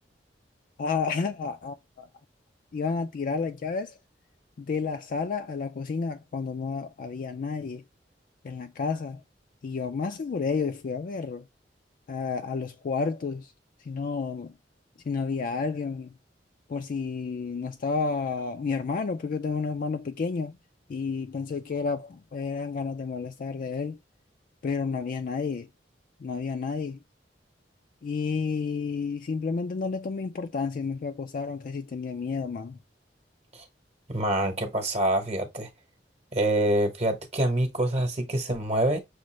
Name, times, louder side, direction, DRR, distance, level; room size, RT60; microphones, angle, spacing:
voice 1, 0.8-2.1 2.7-3.9 4.6-7.8 8.4-9.2 9.6-11.4 12.1-13.5 13.9-14.5 15.1-16.1 16.7-20.6 20.9-24.0 24.6-25.7 26.2-27.0 28.0-32.8, left 5 dB, 50° left, 0.4 m, -31 dB
voice 2, 34.1-35.7 36.3-39.0, right 1 dB, 40° right, 1.0 m, -26 dB
6.3 x 2.4 x 3.0 m
head